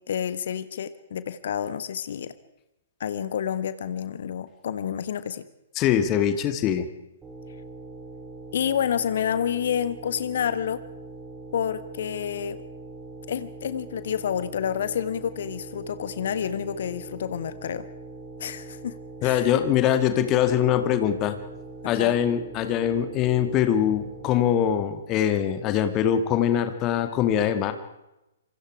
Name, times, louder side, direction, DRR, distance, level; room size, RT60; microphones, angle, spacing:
voice 1, 0.1-2.3 3.0-5.4 8.5-10.8 11.5-12.6 13.3-17.9 18.4-19.5 21.9-22.2, left 8 dB, 50° left, 13 dB, 1.4 m, -29 dB
voice 2, 5.8-6.9 19.2-21.4 21.9-27.7, left 10 dB, 25° left, 9 dB, 2.3 m, -23 dB
sound 1, 7.2-24.4, right 3 dB, 15° right, 4.4 m, -42 dB
27.0 x 25.0 x 4.8 m, 0.95 s
figure-of-eight pair, 120°, 0 cm